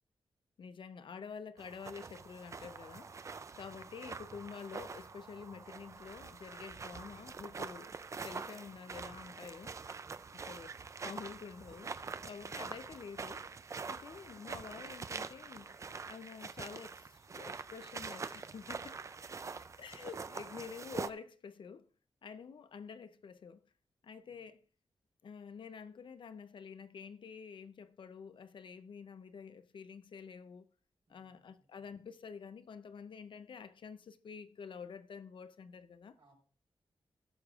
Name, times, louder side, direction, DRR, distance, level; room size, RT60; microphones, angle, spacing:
voice 1, 0.6-3.1 3.6-8.0 8.2-9.7 10.5-10.7 11.0-13.4 13.8-15.7 16.1-19.0 19.8-21.9 22.2-23.6 24.0-24.6 25.2-30.7 31.1-36.2, left 6 dB, 60° left, 0.5 m, -48 dB
sound 1, 1.6-21.1, right 5 dB, 30° right, 0.3 m, -45 dB
voice 2, 2.5-2.9 9.2-10.4 18.9-19.6 24.2-24.5 31.1-31.7 36.1-36.3, right 3 dB, 65° right, 4.9 m, -70 dB
17.5 x 6.5 x 2.4 m
wide cardioid pair, 180°, 10 cm